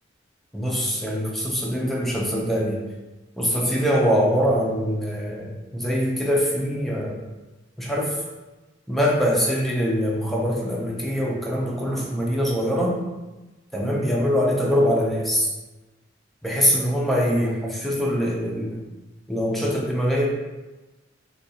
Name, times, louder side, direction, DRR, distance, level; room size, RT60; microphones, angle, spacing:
voice 1, 0.5-2.8 3.4-7.2 7.8-8.2 8.9-13.0 13.7-15.5 16.4-18.8 19.3-20.3, equal, ahead, -3 dB, 0.5 m, -23 dB
3.8 x 2.3 x 2.7 m, 1.1 s
head